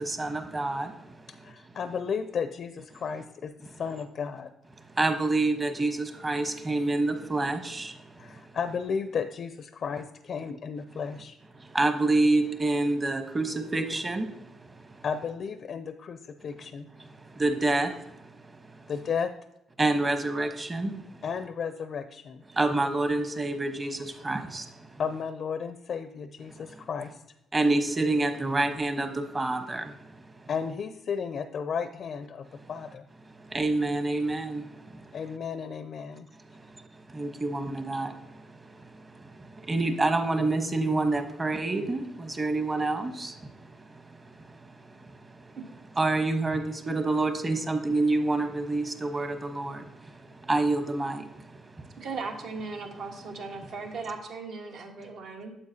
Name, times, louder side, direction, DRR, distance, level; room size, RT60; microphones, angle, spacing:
voice 1, 0.0-1.8 3.7-3.8 4.8-8.6 11.5-15.0 17.0-18.9 19.8-21.2 22.5-25.0 26.5-26.8 27.5-30.5 32.5-32.7 33.2-35.2 36.3-45.6 46.0-52.1, right 2 dB, 25° right, 7 dB, 1.0 m, -29 dB
voice 2, 1.3-3.5 3.8-4.5 8.2-11.4 15.0-16.9 18.9-19.3 21.2-22.4 25.0-27.2 30.5-33.0 35.1-36.3, left 6 dB, 60° left, 10 dB, 0.4 m, -33 dB
voice 3, 52.0-55.5, right 4 dB, 70° right, 3 dB, 1.2 m, -37 dB
9.5 x 7.3 x 2.8 m, 0.87 s
cardioid pair, 90°, 0 cm